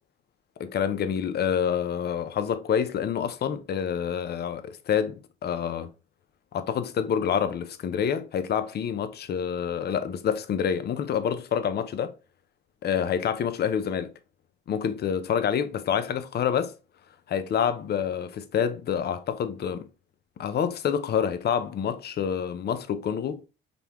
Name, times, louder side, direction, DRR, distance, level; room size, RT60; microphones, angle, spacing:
voice 1, 0.6-5.9 6.5-12.1 12.8-14.1 14.7-16.7 17.3-19.9 20.4-23.4, left 8 dB, 55° left, 0.6 m, -27 dB
5.2 x 2.3 x 3.0 m
cardioid pair, 90°, 20 cm